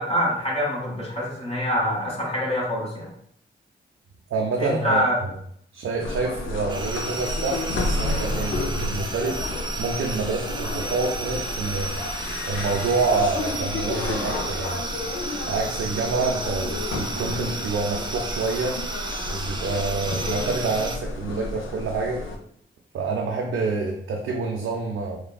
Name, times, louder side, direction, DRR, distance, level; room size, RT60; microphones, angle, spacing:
voice 1, 0.0-3.1 4.6-5.2, equal, 30° left, -3 dB, 1.5 m, -25 dB
voice 2, 4.3-5.3 5.7-9.4 9.8-12.1 12.4-14.8 15.5-18.8 19.3-22.2 22.9-25.2, right 3 dB, 80° right, 0 dB, 0.4 m, -27 dB
sound 1, 6.0-22.4, left 2 dB, 75° left, 0.4 m, -31 dB
sound 2, 6.7-21.0, right 2 dB, 20° right, 0.4 m, -33 dB
3.4 x 2.2 x 2.2 m, 0.67 s
cardioid pair, 45°, 21 cm